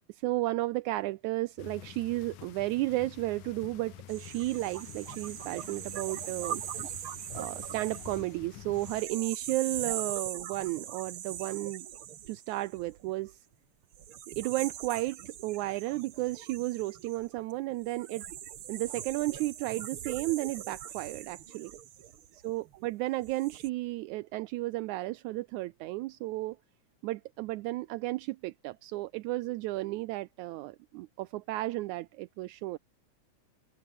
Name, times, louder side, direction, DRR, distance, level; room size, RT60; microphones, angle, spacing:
voice 1, 0.1-6.6 7.3-11.9 12.3-13.4 14.3-18.3 18.7-21.7 22.3-26.6 27.0-32.8, right 18 dB, 80° right, 2.0 m, -33 dB
sound 1, 1.6-9.0, left 11 dB, 85° left, 3.0 m, -48 dB
sound 2, 4.1-13.3 13.9-22.7 23.2-23.7, right 10 dB, 55° right, 1.8 m, -41 dB
omnidirectional pair, 3.5 m